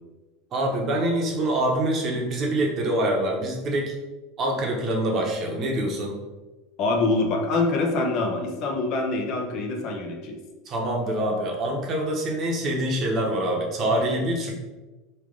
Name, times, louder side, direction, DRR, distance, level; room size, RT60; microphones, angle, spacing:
voice 1, 0.5-3.9 4.4-6.2 10.7-14.5, right 1 dB, 35° right, 0 dB, 0.8 m, -25 dB
voice 2, 6.8-10.4, left 3 dB, 50° left, 1 dB, 0.6 m, -25 dB
3.2 x 2.4 x 3.7 m, 1.2 s
supercardioid pair, 125°, 0 cm